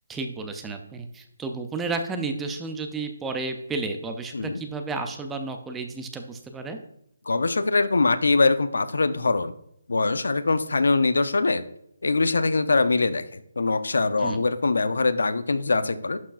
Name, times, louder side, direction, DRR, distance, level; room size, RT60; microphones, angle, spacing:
voice 1, 0.1-6.8 14.2-14.5, right 3 dB, 5° right, 5 dB, 0.3 m, -32 dB
voice 2, 7.3-9.5 9.9-11.6 12.0-16.2, left 3 dB, 75° left, 13 dB, 0.5 m, -23 dB
11.5 x 4.6 x 2.4 m, 0.76 s
hypercardioid pair, 180°, 0 cm